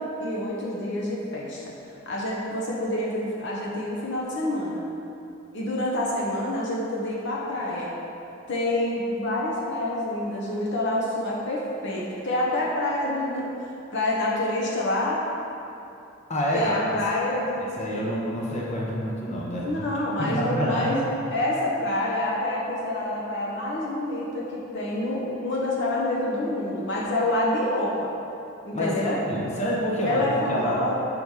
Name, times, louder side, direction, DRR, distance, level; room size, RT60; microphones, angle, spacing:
voice 1, 0.0-1.6 2.1-4.9 5.5-7.9 8.5-15.2 16.5-18.2 19.6-28.1 28.6-29.2 30.0-30.9, left 1 dB, 60° left, -4 dB, 0.8 m, -27 dB
voice 2, 16.3-16.9 17.8-19.8 20.2-20.9 28.7-30.2 30.5-30.8, equal, 35° left, -4 dB, 1.0 m, -27 dB
5.5 x 5.1 x 4.7 m, 2.9 s
head